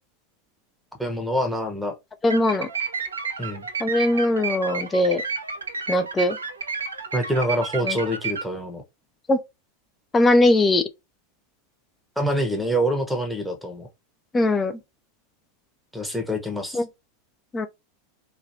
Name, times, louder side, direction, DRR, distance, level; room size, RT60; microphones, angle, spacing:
voice 1, 1.0-1.9 3.4-3.7 7.1-8.8 12.2-13.9 15.9-16.8, equal, ahead, 0.9 m, -26 dB
voice 2, 2.2-2.7 3.8-5.2 5.9-6.4 7.8-8.0 9.3-9.4 10.1-10.8 14.3-14.7 16.7-16.8 17.5-17.7, left 1 dB, 15° left, 0.5 m, -20 dB
sound 1, 2.3-8.4, right 5 dB, 75° right, 0.6 m, -31 dB
3.1 x 2.3 x 2.6 m
figure-of-eight pair, 85°, 0 cm